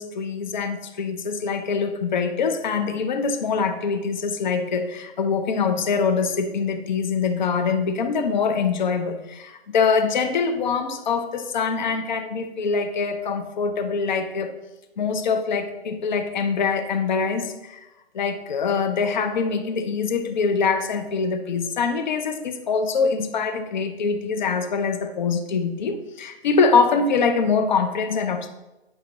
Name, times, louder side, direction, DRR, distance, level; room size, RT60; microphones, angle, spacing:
voice 1, 0.0-14.6 15.0-17.8 18.1-28.5, left 5 dB, 45° left, 7 dB, 0.7 m, -24 dB
9.1 x 5.7 x 2.9 m, 1.0 s
figure-of-eight pair, 130°, 32 cm